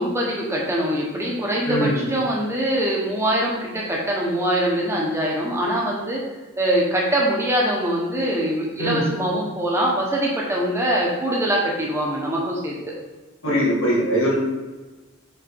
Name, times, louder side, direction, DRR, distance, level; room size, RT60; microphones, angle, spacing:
voice 1, 0.0-6.2 6.6-13.0, right 1 dB, 15° right, -3 dB, 1.1 m, -23 dB
voice 2, 1.6-2.0 8.8-9.0 13.4-14.3, equal, 70° left, -6 dB, 2.0 m, -21 dB
5.5 x 4.2 x 4.3 m, 1.2 s
head